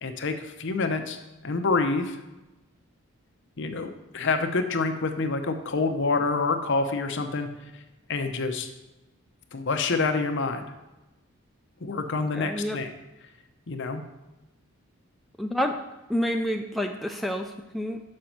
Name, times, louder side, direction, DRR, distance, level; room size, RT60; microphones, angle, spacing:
voice 1, 0.0-2.2 3.6-7.5 8.1-8.7 9.5-10.7 11.8-12.9 13.7-14.0, left 3 dB, 55° left, 7 dB, 0.7 m, -27 dB
voice 2, 12.3-12.8 15.4-15.8 16.1-18.0, equal, ahead, 2 dB, 0.3 m, -28 dB
6.5 x 5.2 x 5.8 m, 1.0 s
head